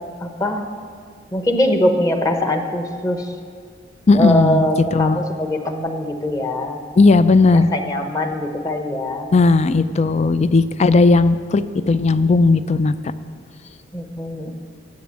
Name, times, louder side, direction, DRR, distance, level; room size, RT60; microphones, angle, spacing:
voice 1, 0.2-0.7 1.3-3.3 4.1-6.8 7.5-9.3 13.9-14.5, left 1 dB, 20° left, 5 dB, 0.9 m, -22 dB
voice 2, 4.1-4.7 4.9-5.2 7.0-7.7 9.3-13.1, left 3 dB, 35° left, 13 dB, 0.4 m, -15 dB
10.5 x 7.7 x 7.4 m, 2.1 s
head